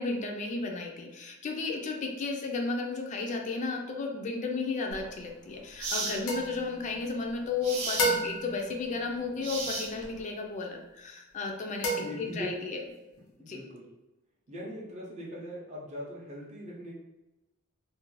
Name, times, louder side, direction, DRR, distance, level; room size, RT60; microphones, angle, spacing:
voice 1, 0.0-11.9 12.2-12.8 13.5-13.6, left 4 dB, 35° left, 2 dB, 0.3 m, -33 dB
sound 1, 4.9-5.1 5.8-6.2 7.6-8.1 9.4-10.2, right 3 dB, 75° right, 0.5 m, -34 dB
sound 2, 6.3-7.5 8.0-9.8 11.8-12.9, equal, 80° left, 0.6 m, -33 dB
voice 2, 11.9-12.7 13.2-13.9 14.5-16.9, equal, 35° right, -4 dB, 0.5 m, -41 dB
2.4 x 2.1 x 3.0 m, 1.0 s
head